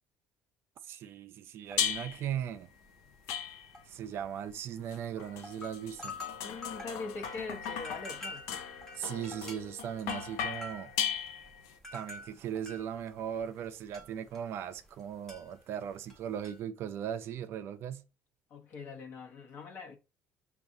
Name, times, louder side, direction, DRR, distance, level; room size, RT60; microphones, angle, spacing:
voice 1, 0.8-2.7 3.9-6.2 9.0-10.9 11.9-18.0, right 9 dB, 50° right, 0.4 m, -38 dB
sound 1, 1.7-2.1 2.4-2.6 3.1-4.6 5.1-5.2 5.4-15.0 15.3-16.6, left 2 dB, 10° left, 0.9 m, -47 dB
sound 2, 1.8-2.3 3.3-3.9 4.9-11.7, left 8 dB, 90° left, 0.5 m, -37 dB
voice 2, 6.4-8.5 18.5-20.0, left 4 dB, 50° left, 0.9 m, -42 dB
6.0 x 2.4 x 2.7 m
cardioid pair, 150°, 5 cm